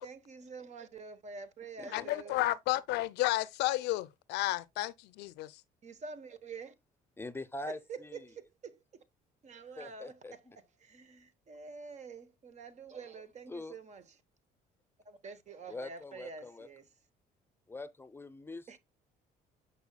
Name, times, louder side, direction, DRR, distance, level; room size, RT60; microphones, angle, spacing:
voice 1, 0.0-2.4 5.8-6.7 7.7-9.0 9.4-14.2 15.0-17.1 18.7-18.8, right 5 dB, 45° right, 1.1 m, -47 dB
voice 2, 1.9-5.6, left 16 dB, 85° left, 0.5 m, -32 dB
voice 3, 7.2-8.2 9.8-10.6 13.5-13.7 15.7-16.7 17.7-18.8, left 2 dB, 15° left, 0.7 m, -43 dB
8.3 x 5.5 x 2.3 m
cardioid pair, 110°, 17 cm